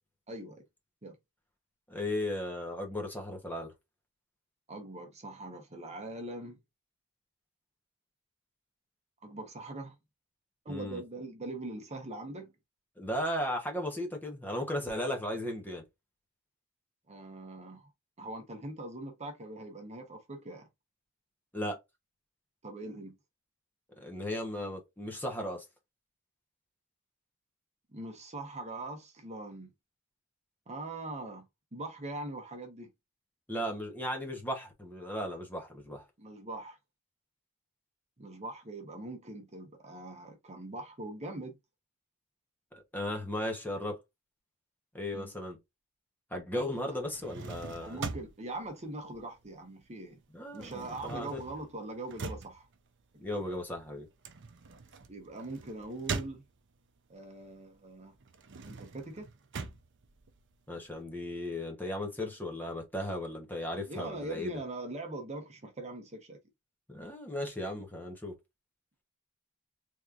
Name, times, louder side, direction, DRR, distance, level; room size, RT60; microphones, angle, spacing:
voice 1, 0.3-0.6 1.0-1.2 4.7-6.6 9.2-10.0 10.6-12.5 17.1-17.9 18.2-20.7 22.6-23.1 27.9-29.7 30.7-31.5 31.7-32.9 36.2-36.8 38.2-41.6 45.1-45.3 47.8-50.2 50.5-52.7 53.2-53.6 55.1-56.4 57.1-58.1 58.6-59.3 63.9-66.4, right 2 dB, 30° right, 1.0 m, -42 dB
voice 2, 1.9-3.7 10.7-11.0 13.0-15.8 21.5-21.8 24.0-25.6 33.5-36.0 42.7-44.0 44.9-45.6 46.3-48.0 50.3-51.4 53.2-54.1 60.7-64.6 66.9-68.3, left 1 dB, 10° left, 1.0 m, -36 dB
sound 1, 47.0-49.8 50.1-56.9 57.4-60.9, right 4 dB, 55° right, 0.7 m, -43 dB
3.6 x 3.1 x 2.4 m
head